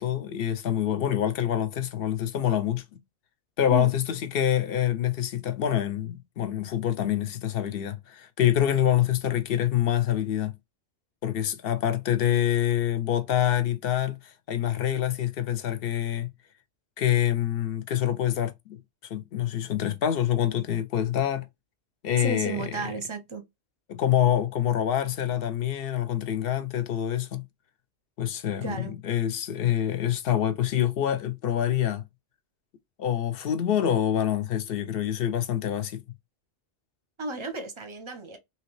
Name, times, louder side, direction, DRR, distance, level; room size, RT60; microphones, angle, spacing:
voice 1, 0.0-3.0 3.6-10.5 11.2-16.3 17.0-21.5 22.0-22.7 23.9-27.5 28.2-32.0 33.0-36.0, left 11 dB, 65° left, 0.7 m, -26 dB
voice 2, 22.2-23.4 28.6-29.0 37.2-38.4, right 3 dB, 35° right, 0.6 m, -33 dB
3.1 x 2.8 x 3.1 m
omnidirectional pair, 1.2 m